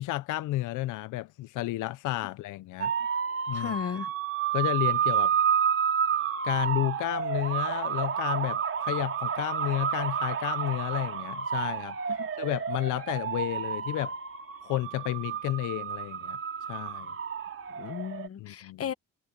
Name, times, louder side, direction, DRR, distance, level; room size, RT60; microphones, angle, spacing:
voice 1, 0.0-2.9 3.5-3.8 4.5-5.3 6.4-12.0 12.4-14.1 14.6-16.4 16.7-17.1 18.4-18.9, left 16 dB, 85° left, 0.7 m, -31 dB
sound 1, 2.8-18.3, right 7 dB, 45° right, 3.2 m, -30 dB
voice 2, 3.5-4.1 12.2-12.3 17.8-18.9, left 8 dB, 50° left, 1.1 m, -35 dB
cardioid pair, 90°, 30 cm